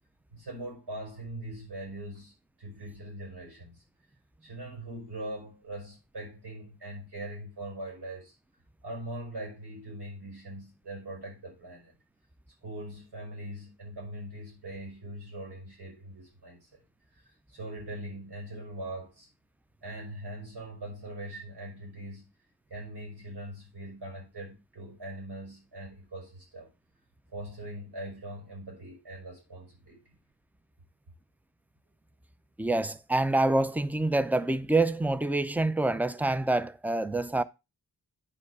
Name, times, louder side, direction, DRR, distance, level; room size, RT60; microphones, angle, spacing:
voice 1, 0.3-2.3 2.6-3.8 4.4-8.3 8.8-11.9 12.6-16.8 17.1-19.3 19.8-22.3 22.7-26.7 27.3-30.0, right 1 dB, 80° right, 5.4 m, -41 dB
voice 2, 32.6-37.4, right 2 dB, 5° right, 0.4 m, -26 dB
9.8 x 4.8 x 4.7 m
wide cardioid pair, 105°, 40 cm